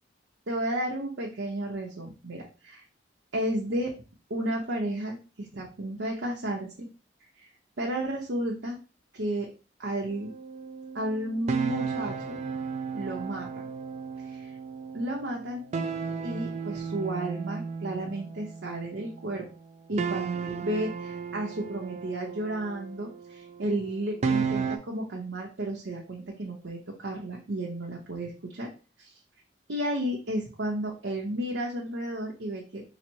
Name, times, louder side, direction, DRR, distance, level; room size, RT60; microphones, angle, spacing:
voice 1, 0.5-2.8 3.3-3.9 4.3-6.9 7.4-7.5 7.8-8.8 9.1-9.5 9.8-10.3 10.9-12.4 12.9-13.7 14.3-14.5 14.9-15.7 16.2-19.4 19.9-28.7 29.0-29.1 29.7-32.8, right 1 dB, 80° right, -2 dB, 0.8 m, -32 dB
sound 1, 10.1-19.4 20.0-24.8, right 5 dB, 35° right, 0.3 m, -34 dB
4.0 x 2.0 x 4.5 m, 0.33 s
head